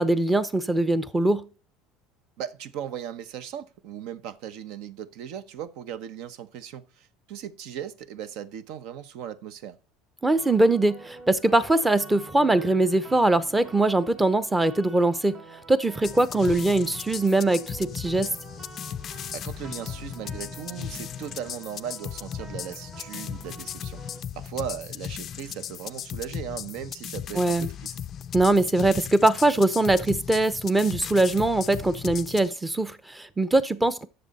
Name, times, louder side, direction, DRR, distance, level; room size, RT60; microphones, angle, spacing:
voice 1, 0.0-1.5 10.2-15.4 15.7-18.3 27.3-27.7 28.3-34.1, right 2 dB, 10° right, 0.7 m, -22 dB
voice 2, 2.4-9.8 19.3-24.0 24.3-27.9, right 9 dB, 70° right, 0.9 m, -37 dB
sound 1, 10.4-24.2, right 3 dB, 35° right, 1.6 m, -47 dB
sound 2, 16.0-32.5, left 9 dB, 40° left, 0.4 m, -37 dB
11.0 x 6.9 x 4.1 m
cardioid pair, 145°, 0 cm